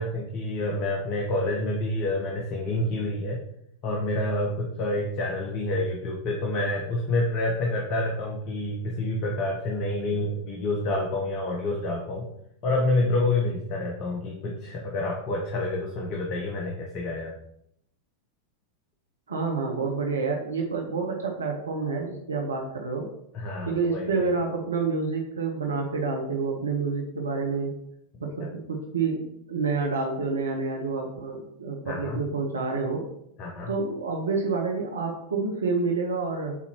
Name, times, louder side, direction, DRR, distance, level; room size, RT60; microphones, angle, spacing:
voice 1, 0.0-3.4 3.8-12.3 12.6-17.3 23.3-24.3 28.4-28.5 31.8-32.2 33.4-33.7, left 2 dB, 40° left, 1 dB, 1.1 m, -28 dB
voice 2, 19.3-23.1 23.7-27.7 28.2-33.0 33.7-36.6, right 4 dB, 70° right, 1 dB, 1.0 m, -28 dB
8.5 x 4.2 x 3.0 m, 0.74 s
figure-of-eight pair, 90°, 0 cm